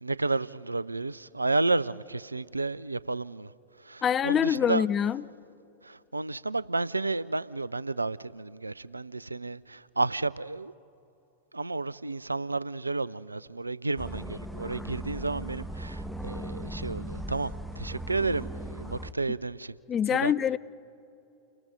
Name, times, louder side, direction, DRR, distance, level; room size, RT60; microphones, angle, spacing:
voice 1, 0.0-3.5 3.8-4.9 5.8-10.7 11.5-19.8 20.1-20.3, right 3 dB, 80° right, 0.4 m, -31 dB
voice 2, 4.0-5.2 19.9-20.6, left 8 dB, 25° left, 0.5 m, -25 dB
sound 1, 14.0-19.1, right 1 dB, ahead, 1.1 m, -38 dB
29.5 x 18.5 x 5.2 m
figure-of-eight pair, 90°, 0 cm